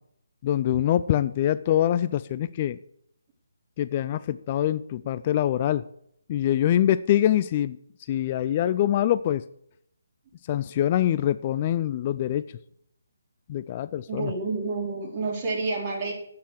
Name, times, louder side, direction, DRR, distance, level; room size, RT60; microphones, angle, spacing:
voice 1, 0.4-2.8 3.8-5.8 6.3-7.8 8.1-9.4 10.5-12.4 13.5-14.3, left 11 dB, 30° left, 15 dB, 0.4 m, -24 dB
voice 2, 14.1-16.1, right 3 dB, 30° right, -1 dB, 3.7 m, -29 dB
10.0 x 8.8 x 4.7 m, 0.71 s
figure-of-eight pair, 145°, 0 cm